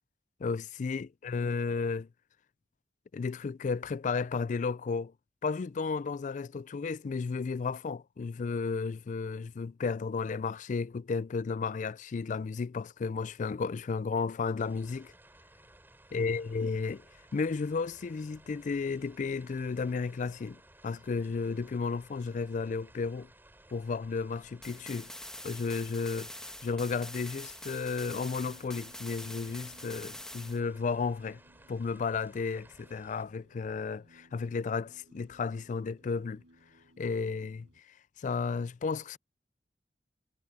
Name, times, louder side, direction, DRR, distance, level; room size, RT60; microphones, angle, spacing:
voice 1, 0.4-2.1 3.1-5.1 5.4-15.1 16.1-17.0 17.3-23.3 23.7-25.1 25.4-26.3 26.6-31.4 31.7-36.4 37.0-37.7 38.2-39.2, left 4 dB, 45° left, 0.3 m, -33 dB
Light rain on street, 14.6-33.3, right 1 dB, 10° right, 7.9 m, -58 dB
sound 1, 24.6-30.6, left 1 dB, 5° left, 2.2 m, -45 dB
sound 2, 27.6-37.8, equal, 85° right, 5.9 m, -62 dB
head